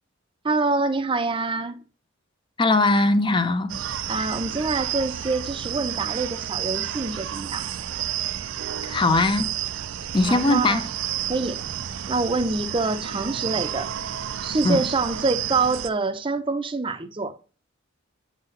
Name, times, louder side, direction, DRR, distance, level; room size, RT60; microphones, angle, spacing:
voice 1, 0.4-1.8 4.1-7.6 10.3-10.9 11.3-11.6 12.1-13.9 14.4-17.3, right 3 dB, 25° right, 0.6 m, -25 dB
voice 2, 2.6-3.8 8.9-9.5 10.1-10.9 14.6-14.8, left 2 dB, 25° left, 0.5 m, -20 dB
sound 1, 3.7-15.9, right 10 dB, 75° right, 0.4 m, -31 dB
7.9 x 4.1 x 3.8 m
head